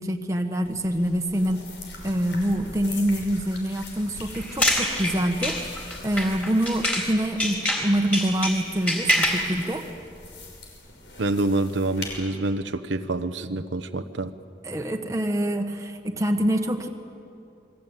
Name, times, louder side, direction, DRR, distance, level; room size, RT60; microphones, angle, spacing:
voice 1, 0.0-1.6 2.0-5.6 6.0-9.8 14.6-16.9, equal, 15° right, 4 dB, 1.5 m, -25 dB
sound 1, 0.6-12.1, left 2 dB, 75° left, 5.9 m, -42 dB
sound 2, 4.3-7.1 7.4-9.5, equal, 5° left, 3.8 m, -25 dB
voice 2, 11.2-14.3, right 2 dB, 85° right, 8 dB, 1.1 m, -26 dB
28.5 x 21.5 x 9.1 m, 2.6 s
head